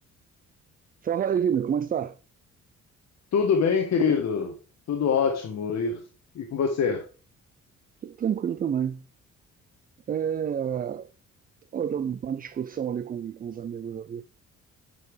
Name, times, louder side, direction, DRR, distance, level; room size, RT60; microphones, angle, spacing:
voice 1, 1.0-2.1 8.0-9.0 10.1-11.1 11.7-14.2, right 8 dB, 30° right, 0.4 m, -28 dB
voice 2, 3.3-4.5 4.9-6.0 6.3-7.0, left 6 dB, 60° left, 1.2 m, -24 dB
9.4 x 5.4 x 3.2 m
cardioid pair, 90°, 30 cm